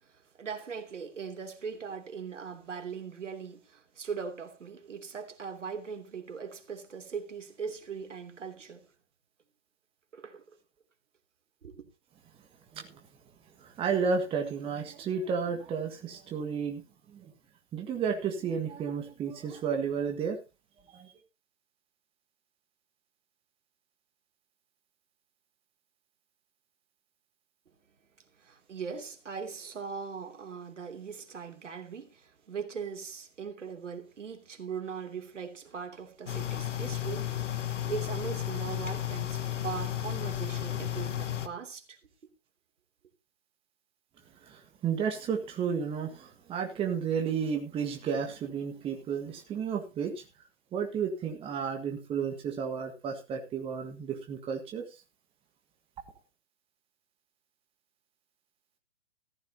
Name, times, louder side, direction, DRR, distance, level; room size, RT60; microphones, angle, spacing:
voice 1, 0.0-8.9 10.1-10.4 11.6-11.8 28.4-37.6 37.9-42.0, right 6 dB, 70° right, 3.0 m, -40 dB
voice 2, 13.6-16.8 17.1-17.3 17.7-20.4 20.9-21.1 44.4-50.2 50.7-54.8, right 6 dB, 15° right, 1.7 m, -32 dB
sound 1, 36.3-41.5, left 11 dB, 75° left, 1.5 m, -33 dB
14.5 x 14.0 x 2.9 m
figure-of-eight pair, 135°, 38 cm